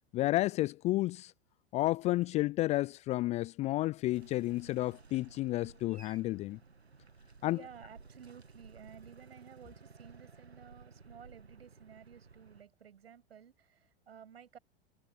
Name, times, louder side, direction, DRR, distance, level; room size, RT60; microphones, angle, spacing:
voice 1, 0.1-1.3 1.7-6.6 7.4-7.6, left 17 dB, 20° left, 0.3 m, -31 dB
sound 1, 4.1-12.6, right 4 dB, 90° right, 1.4 m, -56 dB
voice 2, 7.5-14.6, right 8 dB, 75° right, 7.8 m, -54 dB
figure-of-eight pair, 90°, 31 cm